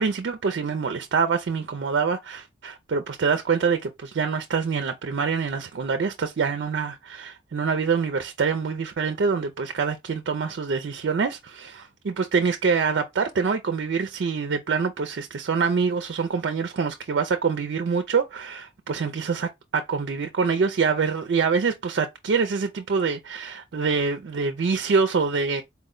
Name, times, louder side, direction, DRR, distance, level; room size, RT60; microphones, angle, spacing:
voice 1, 0.0-25.6, right 5 dB, 65° right, 0.4 m, -25 dB
4.2 x 2.1 x 3.7 m
head